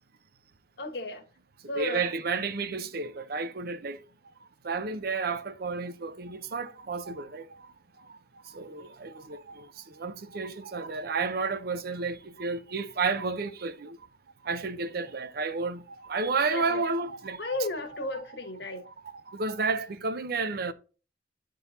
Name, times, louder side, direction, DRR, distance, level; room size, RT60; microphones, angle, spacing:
voice 1, 0.8-1.2 1.7-2.1 16.5-16.8 17.4-18.8, left 2 dB, 65° left, 1.3 m, -34 dB
voice 2, 1.7-4.0 4.6-7.5 8.5-14.0 14.4-17.7 18.8-20.7, right 4 dB, 60° right, 0.7 m, -31 dB
10.5 x 3.9 x 4.0 m
head